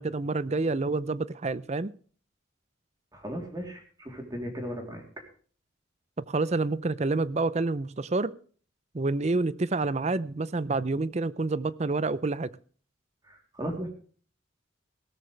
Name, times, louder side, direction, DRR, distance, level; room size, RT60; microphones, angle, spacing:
voice 1, 0.0-1.9 6.2-8.3 8.9-12.5, right 3 dB, 35° right, 0.5 m, -28 dB
voice 2, 3.1-5.0 13.2-13.9, equal, 20° right, 3.4 m, -36 dB
17.5 x 13.5 x 3.4 m
head